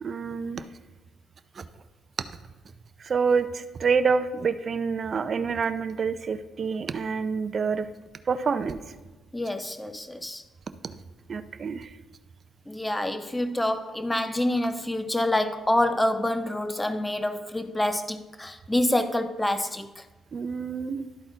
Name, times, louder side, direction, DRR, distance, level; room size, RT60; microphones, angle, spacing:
voice 1, 0.0-0.6 1.6-1.7 3.0-7.9 8.3-8.8 11.3-11.9 20.3-21.1, right 5 dB, 45° right, 0.5 m, -27 dB
voice 2, 9.3-10.4 12.7-20.0, left 1 dB, 10° left, 0.6 m, -27 dB
11.5 x 4.1 x 3.8 m
cardioid pair, 90°, 0 cm